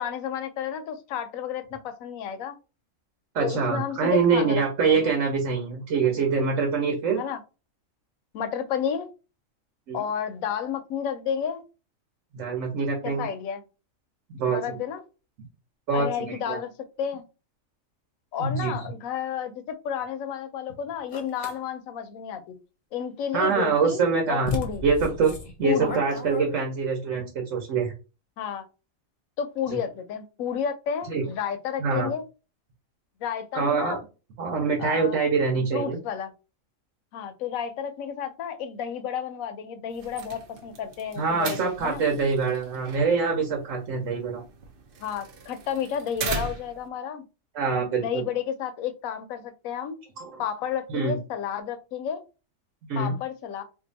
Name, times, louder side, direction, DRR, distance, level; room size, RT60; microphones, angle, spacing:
voice 1, 0.0-2.5 3.4-5.1 7.2-7.4 8.3-9.1 9.9-11.6 13.0-13.6 14.5-15.0 15.9-16.7 17.0-17.2 18.3-22.5 22.9-24.0 24.3-24.8 25.6-26.0 28.4-28.6 29.4-32.2 33.2-34.0 34.8-35.3 35.7-36.3 37.1-42.0 45.0-47.2 48.0-50.0 50.4-52.2 53.0-53.6, left 8 dB, 80° left, 9 dB, 1.0 m, -31 dB
voice 2, 3.3-7.2 9.9-10.0 12.3-13.3 14.4-14.8 15.9-16.6 18.4-18.7 23.3-24.5 24.8-25.3 25.6-27.9 29.7-29.8 31.1-31.2 31.8-32.1 33.5-34.0 34.4-36.0 41.2-44.4 47.5-48.2 50.2-50.4 50.9-51.2 52.9-53.2, right 5 dB, 70° right, 1 dB, 1.2 m, -25 dB
sound 1, 21.1-21.6 23.8-23.9 24.4-27.0, left 1 dB, 40° left, 0.8 m, -33 dB
sound 2, 39.9-46.9, right 4 dB, 55° right, 0.7 m, -39 dB
2.6 x 2.5 x 3.9 m, 0.31 s
omnidirectional pair, 1.4 m